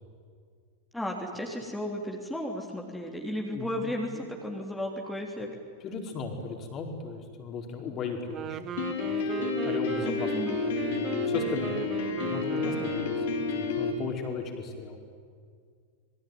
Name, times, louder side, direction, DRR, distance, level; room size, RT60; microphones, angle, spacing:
voice 1, 0.9-5.5 10.0-10.6, left 1 dB, 5° left, 0 dB, 3.4 m, -34 dB
voice 2, 3.5-4.2 5.8-8.8 9.0-10.3 10.7-11.9 12.2-15.0, left 5 dB, 30° left, 3 dB, 4.7 m, -37 dB
Wind instrument woodwind instrument, 8.2-13.5, right 10 dB, 30° right, 1.1 m, -38 dB
Piano, 8.8-13.9, left 3 dB, 55° left, 4.3 m, -30 dB
27.5 x 22.0 x 9.5 m, 2.1 s
figure-of-eight pair, 90°, 0 cm